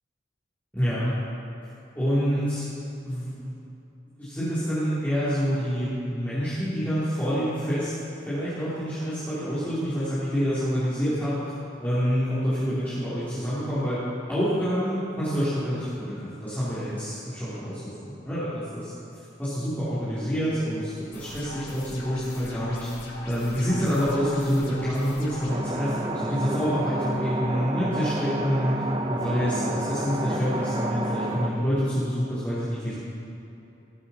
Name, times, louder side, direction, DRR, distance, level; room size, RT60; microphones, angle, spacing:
voice 1, 0.7-1.1 1.9-2.6 3.0-3.5 4.2-7.9 8.2-11.4 11.8-14.0 14.3-18.9 19.4-22.9 23.2-32.9, equal, 10° left, -14 dB, 2.8 m, -27 dB
sound 1, 21.1-25.5, left 2 dB, 80° left, 3.2 m, -42 dB
sound 2, 25.5-31.5, right 1 dB, 25° right, 0.7 m, -30 dB
18.5 x 8.2 x 4.1 m, 2.9 s
head